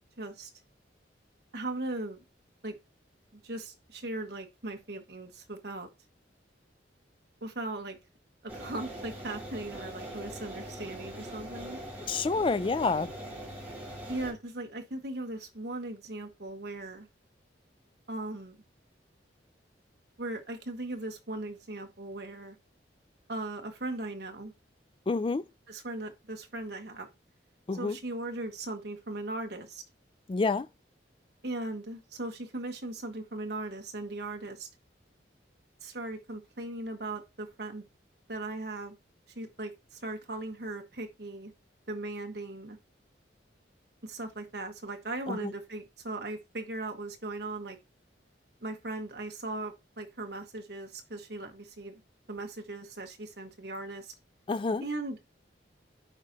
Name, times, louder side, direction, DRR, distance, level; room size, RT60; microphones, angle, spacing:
voice 1, 0.2-0.5 1.5-2.2 2.6-2.8 3.3-5.9 7.4-8.0 8.4-11.8 14.1-17.1 18.1-18.6 20.2-22.6 23.3-24.5 25.7-27.1 27.7-29.8 31.4-34.7 35.8-37.9 38.3-38.9 39.4-41.5 41.9-42.8 44.0-47.8 48.6-51.9 52.3-54.1 54.8-55.2, right 2 dB, 60° right, 1.2 m, -38 dB
sound 1, 8.5-14.3, right 1 dB, 10° right, 2.9 m, -42 dB
voice 2, 12.1-13.1 25.1-25.4 27.7-28.0 30.3-30.7 45.3-45.5 54.5-54.8, left 4 dB, 30° left, 0.3 m, -28 dB
8.8 x 5.0 x 2.7 m
head